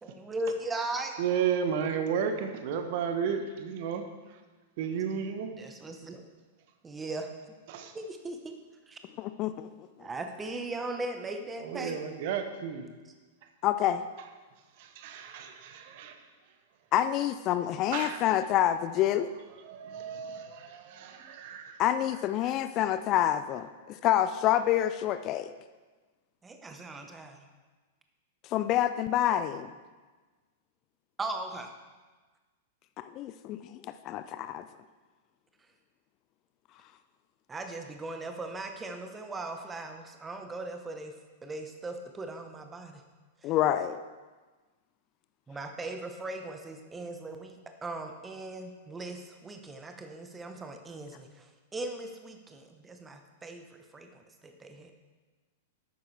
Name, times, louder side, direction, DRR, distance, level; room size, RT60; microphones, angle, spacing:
voice 1, 0.0-1.1 5.6-6.2 6.8-7.3 7.9-8.6 8.9-9.0 10.0-12.0 26.4-27.5 31.2-31.7 37.5-41.1 41.4-43.0 43.4-43.5 45.5-53.7 53.9-54.9, right 2 dB, 15° right, 6 dB, 1.1 m, -38 dB
voice 2, 1.2-4.0 4.8-5.5 7.7-7.9 11.6-12.9 14.8-16.1 17.9-18.2 19.6-21.8 22.4-22.5, right 7 dB, 45° right, 6 dB, 1.1 m, -33 dB
voice 3, 9.2-9.9 13.6-14.0 16.9-19.3 21.8-25.5 28.5-29.7 33.0-34.6 43.4-44.0, left 12 dB, 35° left, 11 dB, 0.4 m, -27 dB
12.0 x 8.8 x 3.4 m, 1.3 s
figure-of-eight pair, 95°, 0 cm